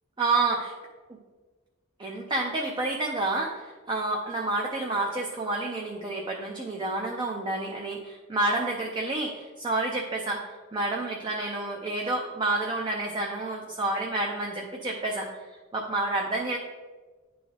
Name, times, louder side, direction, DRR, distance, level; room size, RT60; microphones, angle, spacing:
voice 1, 0.2-0.7 2.0-15.3 15.7-16.6, right 2 dB, 25° right, -1 dB, 0.6 m, -29 dB
9.9 x 3.9 x 3.4 m, 1.3 s
head